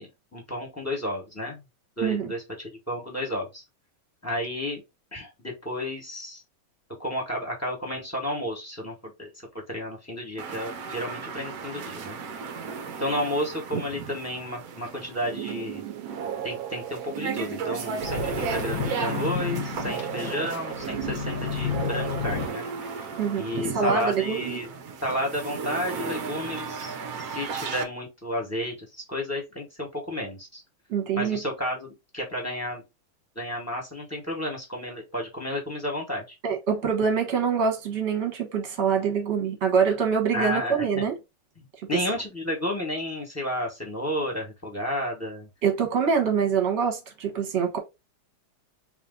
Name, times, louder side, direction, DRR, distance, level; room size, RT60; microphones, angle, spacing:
voice 1, 0.0-1.6 2.0-3.6 4.2-4.8 5.1-6.4 7.0-12.2 13.0-15.9 16.4-23.0 23.3-24.7 25.0-30.6 31.2-32.8 33.3-36.4 40.3-41.1 41.9-45.5, left 1 dB, 10° left, 1.2 m, -32 dB
voice 2, 2.0-2.3 23.2-24.6 30.9-31.4 36.4-41.1 45.6-47.8, right 6 dB, 40° right, 1.3 m, -25 dB
sound 1, 10.4-27.8, right 5 dB, 65° right, 1.0 m, -35 dB
sound 2, 15.2-22.6, right 11 dB, 80° right, 1.3 m, -35 dB
sound 3, 18.0-22.9 23.5-23.6, left 8 dB, 70° left, 1.1 m, -32 dB
3.4 x 3.1 x 3.9 m
omnidirectional pair, 2.2 m